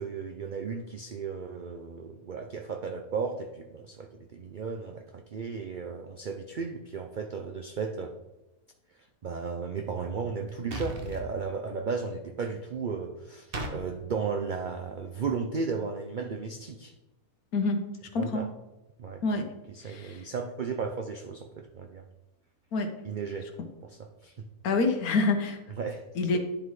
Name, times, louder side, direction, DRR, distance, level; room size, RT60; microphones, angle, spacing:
voice 1, 0.0-8.1 9.2-16.9 18.2-18.5 19.0-19.2 19.7-22.0 23.0-23.5 23.8-24.3 25.8-26.0, right 5 dB, 75° right, 5 dB, 0.4 m, -35 dB
sound 1, 10.7-11.2 13.5-13.8, right 1 dB, 40° right, 1.1 m, -34 dB
voice 2, 18.1-18.4 19.2-19.4 19.8-20.2 22.7-22.9 24.6-25.6 26.1-26.4, left 3 dB, 75° left, 5 dB, 1.5 m, -26 dB
10.5 x 4.1 x 4.7 m, 1.0 s
omnidirectional pair, 1.6 m